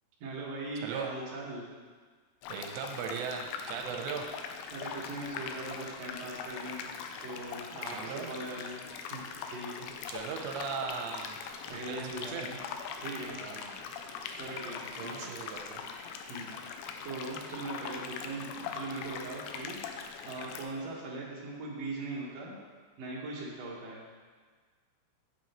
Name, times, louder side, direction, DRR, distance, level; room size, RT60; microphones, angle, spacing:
voice 1, 0.2-1.6 4.7-6.8 7.2-8.8 9.1-9.9 11.7-12.6 13.0-13.4 14.4-15.3 16.3-16.5 17.0-22.6 23.0-24.0, right 2 dB, 55° right, -5 dB, 2.0 m, -40 dB
sound 1, 2.4-20.7, left 6 dB, 85° left, 2.8 m, -42 dB
voice 2, 2.5-4.3 7.9-8.3 10.1-11.4 11.7-12.5 13.3-13.8 15.0-15.8, right 6 dB, 90° right, 2 dB, 2.9 m, -38 dB
8.7 x 7.7 x 3.1 m, 1.5 s
omnidirectional pair, 5.1 m